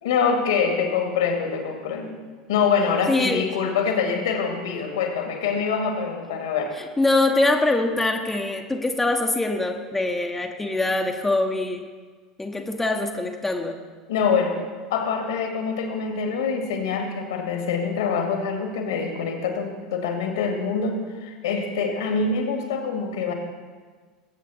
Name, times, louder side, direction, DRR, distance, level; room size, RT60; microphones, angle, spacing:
voice 1, 0.0-2.1 2.5-6.7 14.1-14.6 14.9-23.3, left 5 dB, 65° left, 3 dB, 2.2 m, -25 dB
voice 2, 3.1-3.4 6.8-11.9 12.4-13.8, left 2 dB, 10° left, 3 dB, 1.1 m, -23 dB
20.5 x 8.6 x 4.3 m, 1.5 s
figure-of-eight pair, 75°, 2 cm